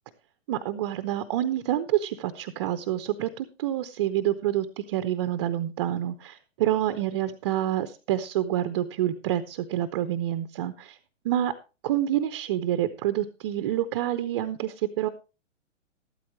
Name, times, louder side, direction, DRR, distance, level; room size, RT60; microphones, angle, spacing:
voice 1, 0.5-11.0 11.2-11.5 11.8-15.1, right 12 dB, 25° right, 11 dB, 0.5 m, -27 dB
12.5 x 12.5 x 3.1 m, 0.31 s
figure-of-eight pair, 120°, 38 cm